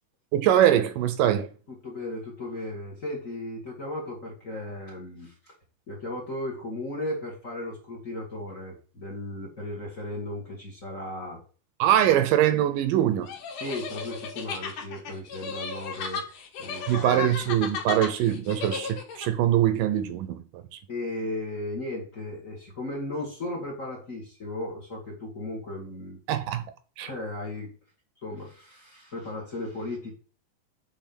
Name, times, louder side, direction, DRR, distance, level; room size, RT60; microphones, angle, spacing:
voice 1, 0.3-1.5 11.8-13.3 16.9-20.8 26.3-26.6 27.0-27.1, right 11 dB, 80° right, 2.3 m, -23 dB
voice 2, 1.7-5.5 5.9-11.4 13.6-16.2 16.6-17.2 20.9-26.2 27.0-27.7 28.2-30.1, left 1 dB, 30° left, 1.9 m, -36 dB
sound 1, 13.3-19.3, left 5 dB, 70° left, 2.8 m, -35 dB
7.0 x 4.9 x 6.0 m
omnidirectional pair, 4.0 m